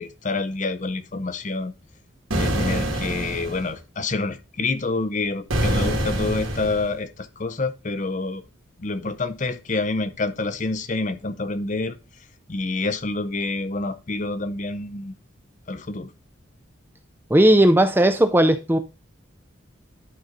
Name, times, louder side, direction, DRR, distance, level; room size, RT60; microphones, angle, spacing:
voice 1, 0.0-1.7 2.3-8.4 8.8-12.0 12.5-15.1 15.7-16.1, left 3 dB, 40° left, 0.6 m, -27 dB
sound 1, 2.3-3.7 5.5-6.9, right 1 dB, 90° right, 2.3 m, -25 dB
voice 2, 17.3-18.8, right 1 dB, 10° right, 0.4 m, -16 dB
11.5 x 3.9 x 4.0 m
head